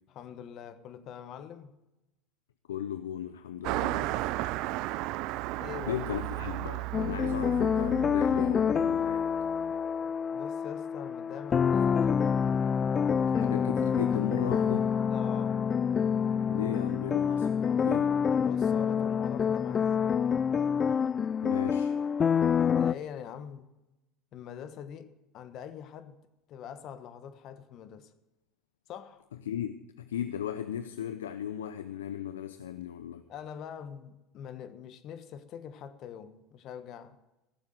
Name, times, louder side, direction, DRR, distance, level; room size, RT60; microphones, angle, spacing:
voice 1, 0.1-1.7 5.6-6.0 10.3-12.5 15.1-15.6 18.4-20.2 22.6-23.7 24.3-26.2 26.5-28.1 28.9-29.2 33.3-37.2, left 8 dB, 55° left, 1.3 m, -44 dB
voice 2, 2.7-4.2 5.9-9.3 13.3-14.9 16.5-18.2 21.4-21.9 29.5-33.2, left 9 dB, 85° left, 0.6 m, -36 dB
Car passing by, 3.6-9.5, right 17 dB, 65° right, 0.4 m, -34 dB
sound 1, 6.9-22.9, left 7 dB, 35° left, 0.4 m, -27 dB
15.5 x 7.2 x 7.9 m
hypercardioid pair, 80°, 0 cm